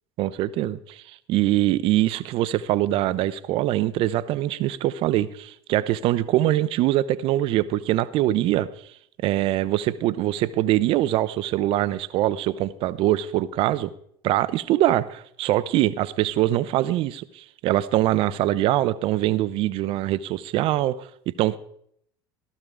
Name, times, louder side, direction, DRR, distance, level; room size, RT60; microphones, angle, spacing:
voice 1, 0.2-8.7 9.2-13.9 14.2-21.6, right 14 dB, 45° right, 16 dB, 0.6 m, -23 dB
15.0 x 13.0 x 3.5 m, 0.68 s
figure-of-eight pair, 75°, 13 cm